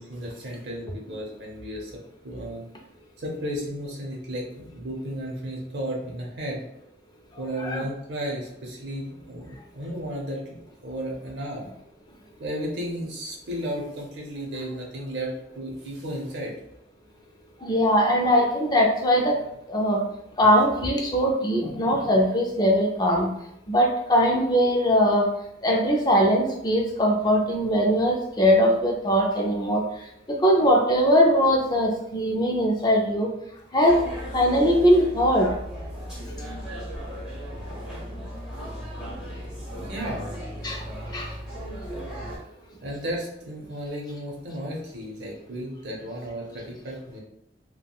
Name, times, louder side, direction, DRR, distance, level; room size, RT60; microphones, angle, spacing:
voice 1, 0.0-1.9 2.2-2.6 3.2-6.7 7.4-11.7 12.4-16.6 39.8-40.3 42.8-47.2, equal, 70° right, -1 dB, 0.8 m, -34 dB
voice 2, 17.6-20.0 20.4-23.3 23.7-25.3 25.6-33.3 33.7-34.0 34.3-35.6 40.6-40.8 41.1-41.3, equal, 25° left, 0 dB, 0.4 m, -21 dB
sound 1, 33.9-42.4, equal, 5° right, 0.8 m, -36 dB
3.4 x 2.2 x 2.3 m, 0.77 s
head